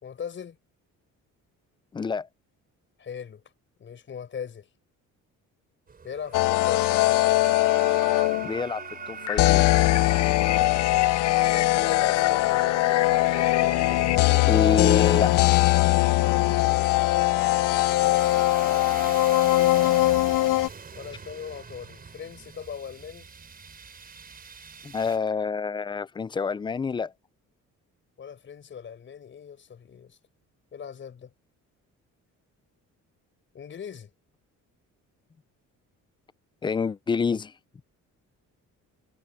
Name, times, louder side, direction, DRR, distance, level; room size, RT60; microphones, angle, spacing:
voice 1, 0.0-0.6 3.0-3.4 3.8-4.7 6.0-7.2 11.4-12.9 20.9-23.3 28.2-30.2 30.7-31.3 33.5-34.1, left 7 dB, 40° left, 5.3 m, -39 dB
voice 2, 1.9-2.3 8.4-9.9 14.4-15.4 24.8-27.1 36.6-37.5, left 5 dB, 15° left, 0.3 m, -27 dB
Chaos & Screams, 5.9-25.2, right 5 dB, 30° right, 5.6 m, -43 dB
sound 1, 6.3-8.6 9.4-20.7, left 18 dB, 90° left, 0.6 m, -21 dB
sound 2, 9.3-14.2, left 13 dB, 60° left, 0.8 m, -32 dB
cardioid pair, 150°, 31 cm